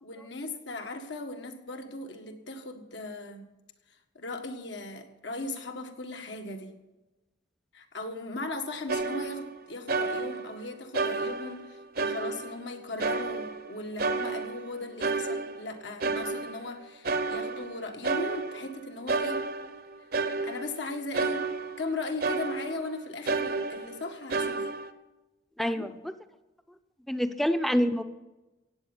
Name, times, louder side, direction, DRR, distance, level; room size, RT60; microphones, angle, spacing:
voice 1, 0.0-3.5 3.9-6.7 7.7-19.5 20.4-21.5 21.8-24.7 25.6-25.8, left 2 dB, 70° left, 5 dB, 1.7 m, -38 dB
sound 1, 8.9-9.6 9.9-10.6 10.9-12.7 13.0-13.7 14.0-16.7 17.0-18.8 19.1-21.9 22.2-22.9 23.3-24.9, right 3 dB, 50° right, 0.9 m, -31 dB
voice 2, 25.6-26.1 27.1-28.0, equal, ahead, 10 dB, 0.7 m, -27 dB
16.0 x 8.8 x 7.2 m, 1.1 s
head